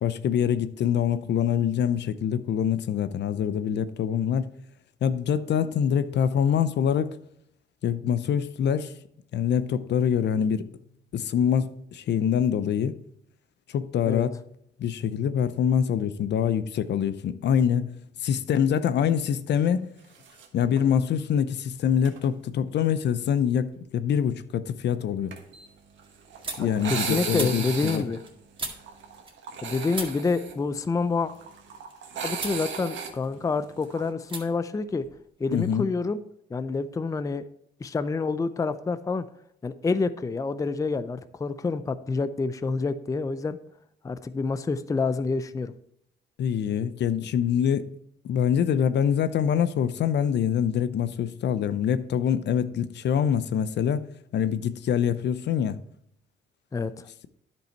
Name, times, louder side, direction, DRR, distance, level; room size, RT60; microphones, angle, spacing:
voice 1, 0.0-4.5 5.0-7.2 7.8-8.9 9.3-10.7 11.1-13.0 13.7-14.4 14.8-17.9 18.2-19.9 20.5-25.3 26.6-28.0 35.5-35.9 46.4-47.9 48.2-54.0 54.3-55.8, left 8 dB, 60° left, 0.6 m, -25 dB
sound 1, 20.1-20.5 20.8-20.9 22.0-22.3 25.3-34.1, right 6 dB, 70° right, 1.4 m, -36 dB
sound 2, 23.7-24.2 24.6-29.6 29.9-31.9 32.3-32.6 33.0-33.7 34.2-34.4 34.7-35.8, right 3 dB, 25° right, 1.9 m, -40 dB
voice 2, 26.6-28.2 29.6-31.3 32.2-35.0 35.4-36.2 36.5-37.4 37.8-39.2 39.6-43.6 44.0-45.7 56.7-57.1, left 4 dB, 15° left, 0.4 m, -28 dB
10.5 x 5.4 x 4.5 m
cardioid pair, 90°, 20 cm